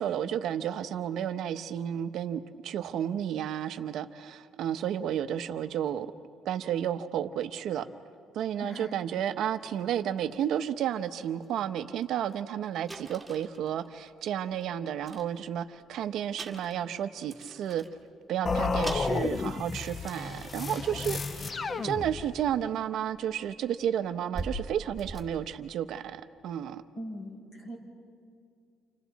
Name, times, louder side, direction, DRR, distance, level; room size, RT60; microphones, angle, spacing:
voice 1, 0.0-6.1 6.4-7.9 8.3-17.8 18.3-26.8, right 10 dB, 60° right, 9 dB, 0.8 m, -32 dB
voice 2, 8.6-8.9 27.0-27.8, equal, 50° left, -2 dB, 6.9 m, -40 dB
sound 1, 9.6-9.7 10.2-10.4 11.1-11.2 11.4-11.6 12.0-12.1 12.3-12.4 12.9-14.6 15.0-15.9 16.3-18.0 18.5-18.6 18.8-20.8 21.2-21.5 22.6-22.7 23.1-26.1, right 2 dB, 5° right, 2.1 m, -43 dB
sound 2, 18.5-22.6, left 4 dB, 25° left, 0.5 m, -32 dB
30.0 x 28.0 x 4.1 m, 2.3 s
cardioid pair, 145°, 0 cm